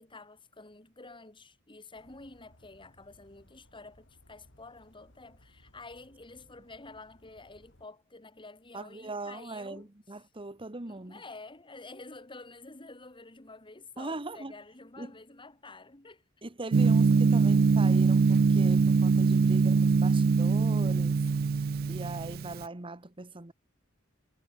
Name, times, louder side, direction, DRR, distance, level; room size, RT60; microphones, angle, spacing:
voice 1, 0.0-9.9 10.9-16.2, left 3 dB, 25° left, 2.4 m, -49 dB
sound 1, 1.9-7.9, left 1 dB, 65° left, 7.8 m, -62 dB
voice 2, 8.7-11.2 14.0-14.5 15.0-15.1 16.4-21.2 21.9-23.5, right 2 dB, 25° right, 1.4 m, -40 dB
Gong, 16.7-22.6, right 4 dB, 50° right, 0.4 m, -23 dB
head